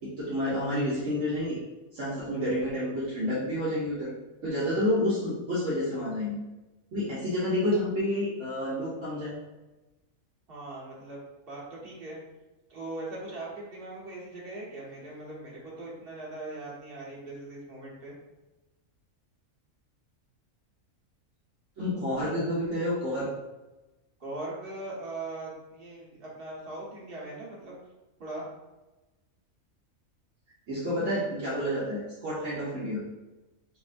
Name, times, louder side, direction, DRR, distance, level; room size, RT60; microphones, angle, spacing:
voice 1, 0.0-1.6 1.9-4.1 4.4-6.4 6.9-9.4 21.8-23.4 30.7-33.1, left 1 dB, 65° right, -8 dB, 1.2 m, -29 dB
voice 2, 10.5-11.2 11.5-12.2 12.7-18.2 24.2-27.8 28.2-28.5, right 2 dB, 45° right, -5 dB, 1.3 m, -40 dB
5.7 x 2.1 x 2.5 m, 1.1 s
omnidirectional pair, 1.4 m